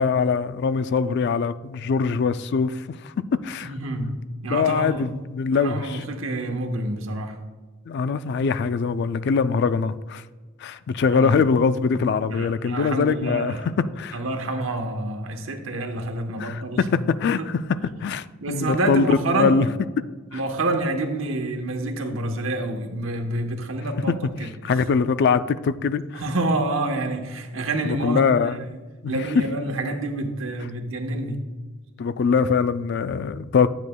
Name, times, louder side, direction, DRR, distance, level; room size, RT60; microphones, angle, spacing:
voice 1, 0.0-3.1 3.4-3.7 4.5-6.0 7.9-10.2 10.6-14.2 16.4-19.7 20.3-20.4 24.1-24.2 24.6-26.2 27.8-28.6 29.0-29.2 32.0-33.7, left 5 dB, 55° left, 14 dB, 0.3 m, -23 dB
voice 2, 3.6-4.1 4.4-5.0 5.5-7.4 11.1-11.4 12.3-13.6 14.1-16.9 17.3-17.5 18.4-19.6 20.3-24.8 26.1-28.2 28.5-28.8 29.1-31.4, right 2 dB, 70° right, 4 dB, 1.0 m, -28 dB
10.5 x 8.0 x 2.2 m, 1.3 s
head